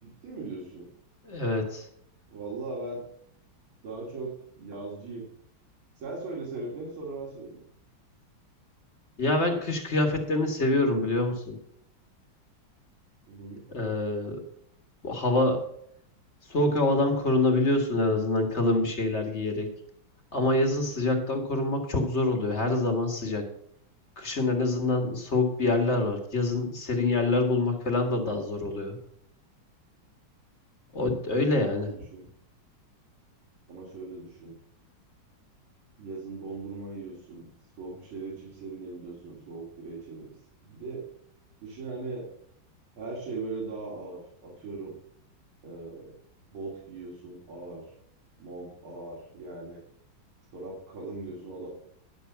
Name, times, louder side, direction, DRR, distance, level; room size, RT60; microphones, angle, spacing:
voice 1, 0.0-0.8 2.3-3.0 3.8-4.3 4.6-5.2 6.0-7.6 13.3-13.6 31.3-32.2 33.7-34.5 36.0-37.5 37.8-40.3 40.6-41.0 41.6-42.3 43.0-44.9 45.6-46.1 46.5-47.9 48.4-49.8 50.5-51.7, right 3 dB, 85° right, -3 dB, 3.3 m, -39 dB
voice 2, 1.2-1.8 9.2-11.6 13.7-14.4 15.0-15.6 16.5-19.7 20.3-23.4 24.2-29.0 30.9-31.9, left 2 dB, 35° left, 4 dB, 1.7 m, -26 dB
10.5 x 6.7 x 5.7 m, 0.69 s
omnidirectional pair, 2.2 m